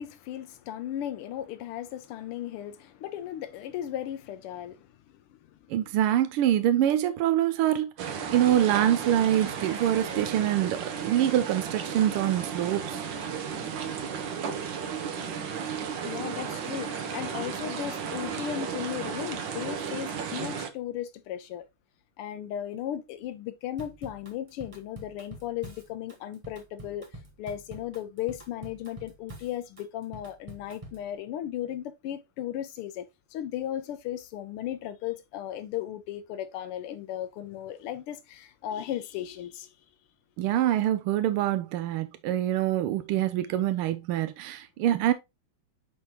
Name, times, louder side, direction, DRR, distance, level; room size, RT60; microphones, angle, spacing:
voice 1, 0.0-5.4 16.0-21.7 22.2-27.1 27.4-39.7, left 11 dB, 90° left, 1.6 m, -36 dB
voice 2, 5.7-13.0 40.4-45.1, right 12 dB, 80° right, 1.6 m, -25 dB
sound 1, 8.0-20.7, right 6 dB, 65° right, 1.5 m, -34 dB
Drum kit / Drum, 23.8-31.1, right 1 dB, 20° right, 0.9 m, -46 dB
9.6 x 3.6 x 2.9 m
omnidirectional pair, 2.4 m